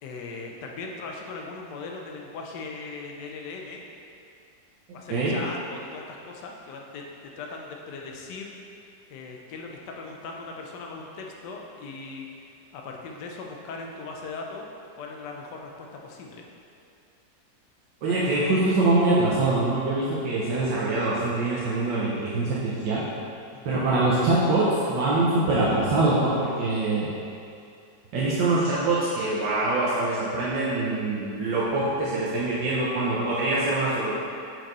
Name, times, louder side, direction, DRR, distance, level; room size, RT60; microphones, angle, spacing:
voice 1, 0.0-3.8 4.9-8.5 9.1-12.3 12.7-14.7 14.9-16.4 18.0-18.2 23.5-23.8, left 3 dB, 75° left, 0 dB, 1.3 m, -39 dB
voice 2, 18.0-23.0 23.6-27.1 28.1-34.1, right 2 dB, 80° right, -7 dB, 1.5 m, -24 dB
6.3 x 4.7 x 3.9 m, 2.5 s
omnidirectional pair, 1.9 m